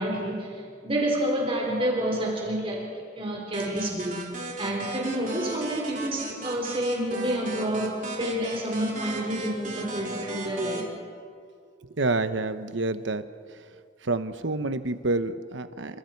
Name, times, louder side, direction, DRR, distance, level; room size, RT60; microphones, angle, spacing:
voice 1, 0.0-4.2 4.6-10.9, right 1 dB, 30° right, -2 dB, 4.2 m, -29 dB
sound 1, 3.5-10.8, right 2 dB, 45° right, 3.6 m, -37 dB
voice 2, 12.0-13.3 14.0-16.0, right 2 dB, 80° right, 10 dB, 1.1 m, -28 dB
28.5 x 26.0 x 4.6 m, 2.1 s
head